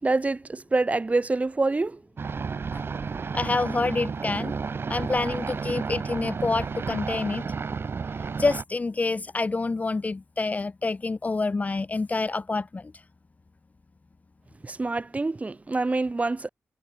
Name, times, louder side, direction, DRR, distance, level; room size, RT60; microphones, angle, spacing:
voice 1, 0.0-2.0 14.6-16.5, right 3 dB, 30° right, 7.0 m, -26 dB
sound 1, 2.2-8.6, right 5 dB, 50° right, 6.8 m, -32 dB
voice 2, 3.3-4.5 4.9-7.4 8.4-12.8, left 3 dB, 30° left, 1.1 m, -27 dB
cardioid pair, 90°, 5 cm